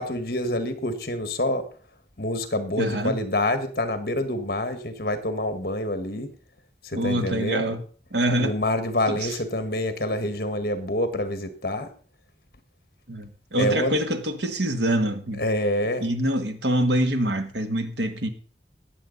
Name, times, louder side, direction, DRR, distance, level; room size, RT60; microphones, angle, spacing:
voice 1, 0.0-1.6 2.2-6.3 6.8-7.7 8.4-11.9 13.6-14.0 15.4-16.1, left 1 dB, 55° left, 1.5 m, -27 dB
voice 2, 2.8-3.2 6.9-7.8 8.1-8.5 9.1-9.4 13.1-15.4 16.0-18.3, right 1 dB, 80° right, 1.5 m, -25 dB
19.0 x 7.1 x 4.0 m
head